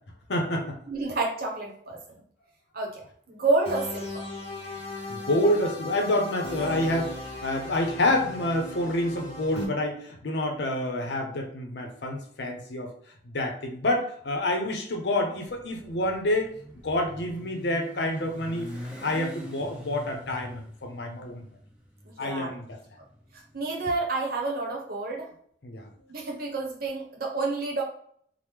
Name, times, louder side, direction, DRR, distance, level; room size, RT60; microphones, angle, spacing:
voice 1, 0.3-0.8 5.1-12.9 13.3-16.5 16.8-18.7 19.0-21.4 22.2-22.8 25.6-25.9, left 1 dB, 70° left, 3 dB, 0.6 m, -28 dB
voice 2, 0.9-2.0 2.7-4.2 22.2-22.5 23.5-25.3 26.1-27.8, right 3 dB, 55° right, -1 dB, 0.8 m, -29 dB
sound 1, 3.7-9.7, left 2 dB, 35° left, 1.1 m, -37 dB
Motorcycle, 15.5-23.7, equal, 5° right, 0.6 m, -43 dB
3.0 x 2.0 x 3.4 m, 0.63 s
head